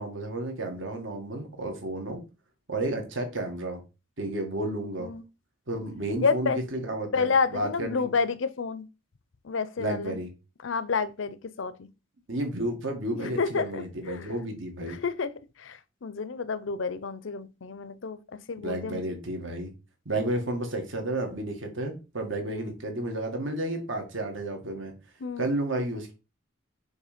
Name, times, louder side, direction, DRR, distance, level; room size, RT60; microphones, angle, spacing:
voice 1, 0.0-2.2 2.7-3.8 4.2-5.1 5.7-8.0 9.8-10.3 12.3-15.0 18.6-19.7 20.1-24.9 25.4-26.1, right 1 dB, 70° right, 1.7 m, -32 dB
voice 2, 6.2-6.6 7.1-8.9 9.4-10.2 10.6-11.9 13.1-14.3 14.8-18.2 18.5-19.0 22.5-22.7 25.2-25.5, left 5 dB, 70° left, 0.6 m, -30 dB
6.5 x 3.2 x 5.0 m
head